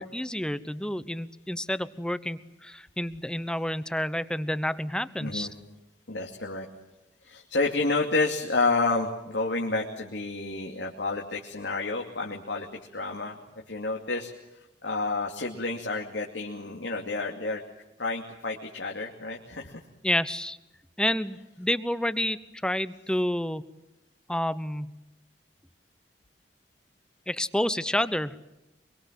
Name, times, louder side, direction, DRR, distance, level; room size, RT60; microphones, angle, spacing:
voice 1, 0.0-5.5 20.0-20.6 21.0-23.6 24.3-24.9 27.3-28.4, left 1 dB, 5° left, 15 dB, 0.9 m, -29 dB
voice 2, 5.2-5.5 6.1-6.7 7.2-12.7 12.9-17.6 18.0-19.8, left 3 dB, 90° left, 1 dB, 2.6 m, -30 dB
25.0 x 23.0 x 7.6 m, 0.94 s
head